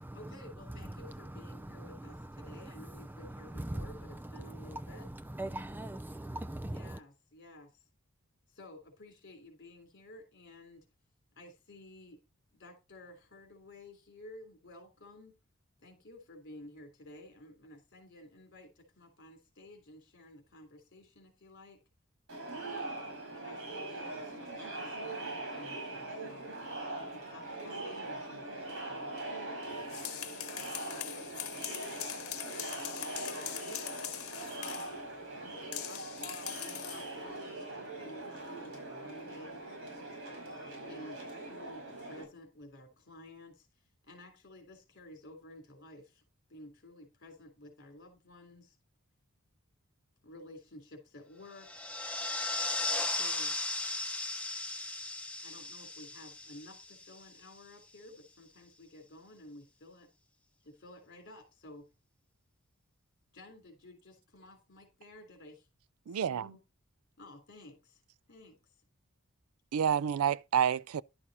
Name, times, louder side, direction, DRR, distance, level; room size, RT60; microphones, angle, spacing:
voice 1, 0.1-5.1 6.6-7.8 8.5-10.8 11.3-12.2 12.5-15.4 15.8-21.8 23.3-26.5 27.0-29.1 30.9-32.6 33.1-35.3 35.8-39.6 40.8-46.2 46.5-48.8 50.2-51.8 53.1-53.6 55.4-60.1 60.6-61.9 63.3-65.7 66.1-66.6 67.2-68.0 68.3-68.6, left 1 dB, 50° left, 3.2 m, -53 dB
voice 2, 0.8-7.0, right 1 dB, 10° right, 0.4 m, -42 dB
Crowd, 22.3-42.2, right 2 dB, 60° right, 5.1 m, -42 dB
sound 1, 29.7-35.0 35.7-37.1, left 12 dB, 85° left, 1.2 m, -42 dB
sound 2, 51.6-57.4, left 2 dB, 5° left, 0.9 m, -36 dB
voice 3, 66.1-66.5 69.7-71.0, right 8 dB, 85° right, 0.4 m, -29 dB
11.5 x 6.0 x 4.1 m
head